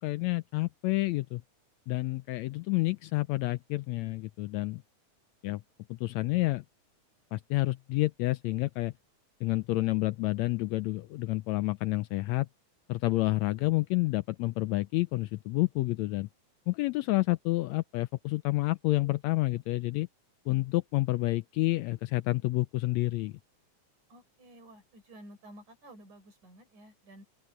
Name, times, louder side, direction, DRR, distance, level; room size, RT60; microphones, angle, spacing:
voice 1, 0.0-1.4 1.9-4.8 5.4-5.6 5.9-6.6 7.3-8.9 9.4-12.5 12.9-16.3 16.7-20.1 20.5-23.4, left 19 dB, 80° left, 1.7 m, -29 dB
voice 2, 24.1-27.2, right 1 dB, 75° right, 6.7 m, -52 dB
open air
omnidirectional pair, 3.5 m